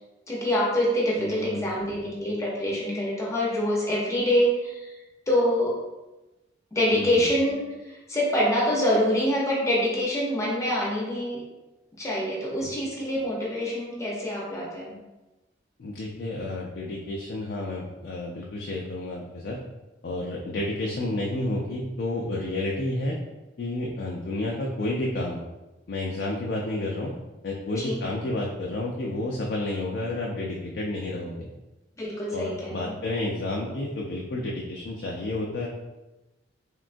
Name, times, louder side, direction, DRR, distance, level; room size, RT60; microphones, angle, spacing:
voice 1, 0.3-4.9 5.3-5.8 6.7-11.4 12.0-14.9 27.8-28.0 32.0-33.0, equal, 15° left, -4 dB, 0.6 m, -25 dB
voice 2, 1.2-1.7 6.9-7.2 15.8-19.6 20.0-23.2 23.6-25.4 25.9-27.1 27.4-31.5 32.3-35.7, left 2 dB, 55° left, -2 dB, 0.3 m, -30 dB
3.5 x 2.2 x 2.5 m, 1.1 s
head